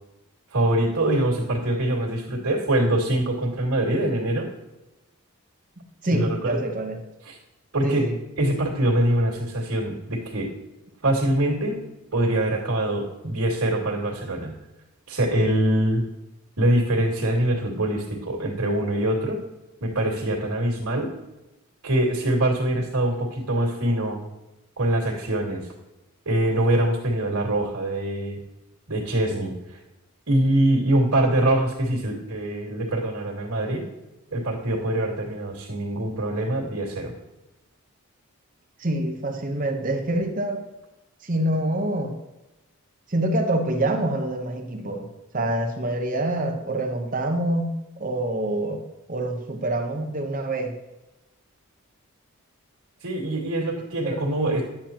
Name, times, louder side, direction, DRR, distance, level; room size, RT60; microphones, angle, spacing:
voice 1, 0.5-4.5 6.1-6.6 7.2-7.4 7.7-8.1 8.4-10.5 11.0-11.8 12.1-14.5 15.1-16.0 16.6-19.4 19.8-21.1 21.8-24.2 24.8-25.6 26.3-28.4 28.9-29.8 30.3-33.8 34.3-37.1 53.0-54.6, right 1 dB, 80° right, -3 dB, 2.2 m, -24 dB
voice 2, 5.8-7.0 7.8-8.2 38.8-40.6 41.2-42.1 43.1-45.1 45.3-47.7 48.0-48.8 49.1-50.7 54.0-54.2, right 1 dB, 35° right, 4 dB, 0.9 m, -26 dB
10.5 x 7.3 x 2.9 m, 1.0 s
head